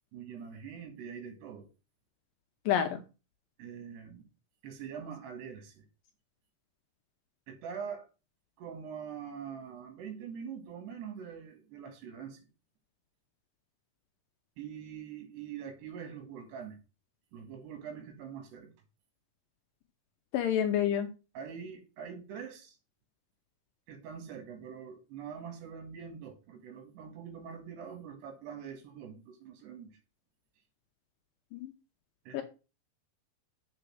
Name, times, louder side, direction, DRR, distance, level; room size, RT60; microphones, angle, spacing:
voice 1, 0.1-1.7 3.6-4.3 4.6-5.9 7.5-8.1 8.6-12.5 14.6-16.8 17.3-18.7 21.4-22.8 23.9-30.0 32.3-32.4, right 7 dB, 90° right, 6 dB, 4.0 m, -44 dB
voice 2, 2.7-3.0 20.3-21.1 31.5-31.7 32.3-32.4, left 9 dB, 75° left, 7 dB, 2.1 m, -28 dB
8.1 x 3.9 x 6.3 m, 0.31 s
omnidirectional pair, 4.6 m